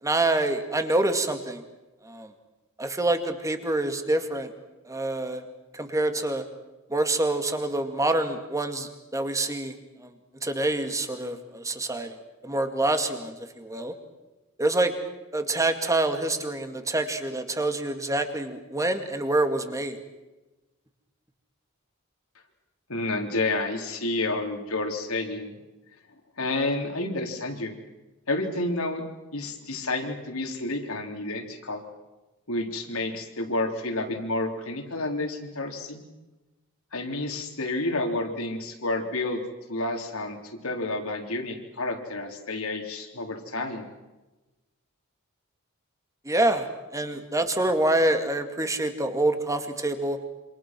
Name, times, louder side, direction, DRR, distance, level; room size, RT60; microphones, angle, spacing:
voice 1, 0.0-1.6 2.0-2.3 2.8-4.5 4.8-5.4 5.7-6.4 6.9-10.1 10.4-12.2 12.4-13.9 14.6-14.9 15.3-20.0 46.2-50.2, right 2 dB, 15° right, 7 dB, 2.2 m, -26 dB
voice 2, 22.9-25.6 26.4-27.7 28.3-29.0 29.3-31.8 32.5-36.0 36.9-39.4 39.7-43.9, left 2 dB, 75° left, 3 dB, 3.8 m, -30 dB
27.5 x 26.0 x 6.1 m, 1.1 s
head